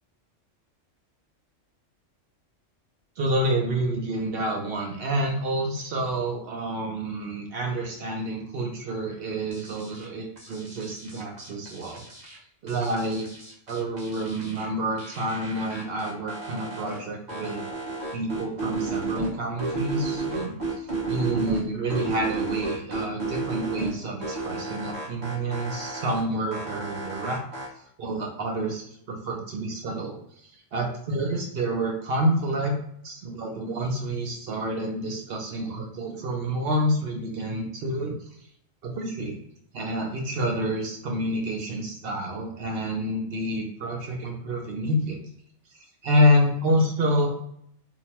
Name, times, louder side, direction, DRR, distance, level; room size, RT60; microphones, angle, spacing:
voice 1, 3.2-12.0 12.6-13.3 13.7-17.6 18.1-27.4 28.0-32.7 33.0-38.1 38.8-39.4 39.7-45.2 46.0-47.4, equal, 60° right, 1 dB, 0.7 m, -28 dB
sound 1, 9.5-10.0 10.4-12.4 12.7-14.7 15.0-17.0 17.3-19.3 19.6-21.6 21.9-23.9 24.2-26.2 26.5-27.7, right 3 dB, 40° right, 1.0 m, -32 dB
2.8 x 2.1 x 2.8 m, 0.69 s
omnidirectional pair, 1.3 m